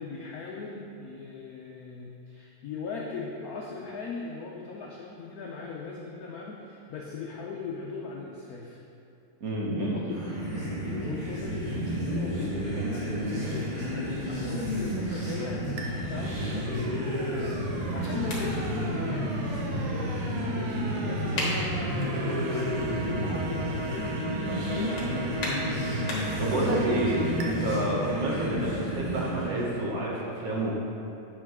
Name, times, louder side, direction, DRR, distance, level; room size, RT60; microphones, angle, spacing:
voice 1, 0.0-8.8 9.7-10.1 11.0-26.1 26.4-27.1 27.9-28.1, left 4 dB, 80° left, -2 dB, 0.8 m, -39 dB
voice 2, 9.4-10.2 12.0-12.2 26.4-30.7, right 1 dB, 50° right, -4 dB, 1.4 m, -29 dB
sound 1, 10.1-29.6, equal, 20° right, 1.8 m, -31 dB
sound 2, 15.8-27.5, right 2 dB, 80° right, 1.7 m, -38 dB
sound 3, 17.2-26.5, left 1 dB, 55° left, 2.1 m, -40 dB
8.8 x 6.1 x 3.6 m, 2.8 s
omnidirectional pair, 2.4 m